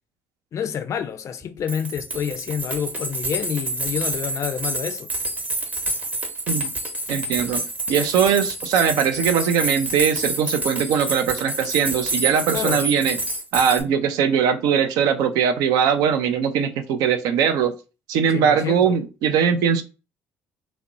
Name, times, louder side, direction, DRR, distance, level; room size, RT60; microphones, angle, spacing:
voice 1, 0.5-5.1 12.5-12.9 18.3-18.9, left 8 dB, 50° left, 0.4 m, -28 dB
sound 1, 1.4-1.5 1.7-13.8, right 2 dB, 20° right, 0.8 m, -28 dB
voice 2, 7.1-13.2 13.5-17.7 18.1-19.8, right 7 dB, 65° right, 0.4 m, -21 dB
2.5 x 2.0 x 2.5 m
hypercardioid pair, 55°, 7 cm